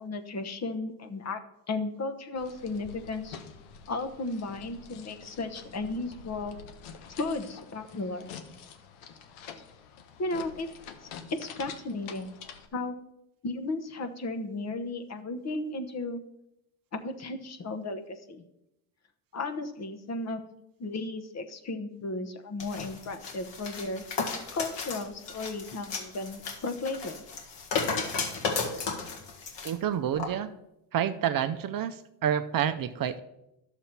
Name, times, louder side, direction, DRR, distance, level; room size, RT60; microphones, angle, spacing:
voice 1, 0.0-1.4 1.7-3.4 3.9-6.6 7.1-8.3 10.2-10.7 11.0-12.3 12.7-13.0 13.4-16.2 16.9-18.4 19.3-20.4 20.8-24.0 24.5-27.2, left 2 dB, 35° left, 8 dB, 1.0 m, -34 dB
sound 1, 2.4-12.7, left 6 dB, 90° left, 1.1 m, -47 dB
sound 2, 22.6-29.7 30.2-30.3, left 5 dB, 60° left, 1.9 m, -34 dB
voice 2, 29.6-30.5 30.9-33.2, right 9 dB, 45° right, 10 dB, 0.6 m, -29 dB
11.0 x 7.0 x 4.4 m, 0.85 s
cardioid pair, 100°, 47 cm